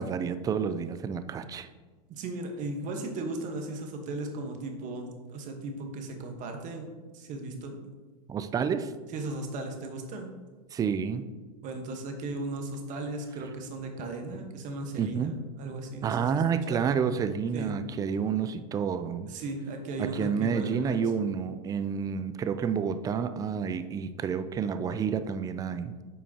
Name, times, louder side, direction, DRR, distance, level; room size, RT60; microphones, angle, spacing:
voice 1, 0.0-1.7 8.3-8.9 10.7-11.2 15.0-15.3 16.0-19.3 20.0-25.9, right 6 dB, 20° right, 11 dB, 0.4 m, -29 dB
voice 2, 2.1-7.8 9.1-10.3 11.6-16.4 16.7-16.8 17.5-17.7 19.3-21.0, right 2 dB, 40° right, 4 dB, 1.3 m, -36 dB
8.9 x 5.5 x 2.9 m, 1.3 s
supercardioid pair, 125°, 20 cm